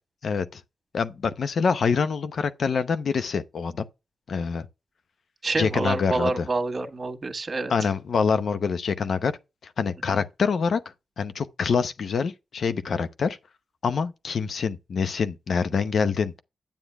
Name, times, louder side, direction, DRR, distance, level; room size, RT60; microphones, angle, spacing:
voice 1, 0.2-0.6 0.9-3.8 4.3-4.7 5.6-6.5 7.7-9.3 9.6-10.8 11.2-13.4 13.8-16.3, left 5 dB, 70° left, 0.7 m, -25 dB
voice 2, 5.4-7.7 10.1-10.2, right 3 dB, 45° right, 1.5 m, -27 dB
8.6 x 8.1 x 2.4 m
cardioid pair, 50°, 0 cm